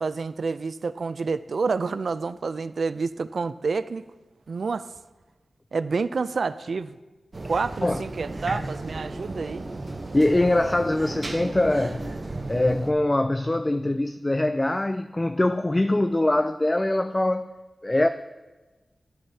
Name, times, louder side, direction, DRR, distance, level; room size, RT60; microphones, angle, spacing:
voice 1, 0.0-4.0 4.5-4.9 5.7-7.0 7.4-9.7, right 4 dB, 70° right, 0.3 m, -28 dB
sound 1, 7.3-12.9, right 2 dB, 45° right, 0.8 m, -35 dB
voice 2, 10.1-12.1 12.5-17.5 17.8-18.1, left 1 dB, 20° left, 0.3 m, -23 dB
12.0 x 9.9 x 2.8 m
wide cardioid pair, 70°, 0 cm